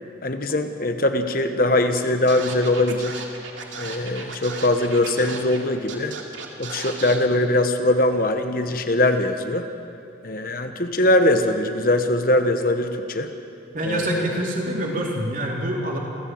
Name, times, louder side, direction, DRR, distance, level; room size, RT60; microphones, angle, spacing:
voice 1, 0.2-3.1 3.8-6.2 6.6-9.7 10.2-13.3 13.8-14.4, left 1 dB, 50° left, 7 dB, 1.2 m, -21 dB
Scratching (performance technique), 2.0-2.1 2.3-5.6 5.9-7.2, right 5 dB, 85° right, 2.5 m, -35 dB
voice 2, 13.7-16.0, equal, 45° right, -1 dB, 3.4 m, -26 dB
28.5 x 14.5 x 7.8 m, 2.6 s
head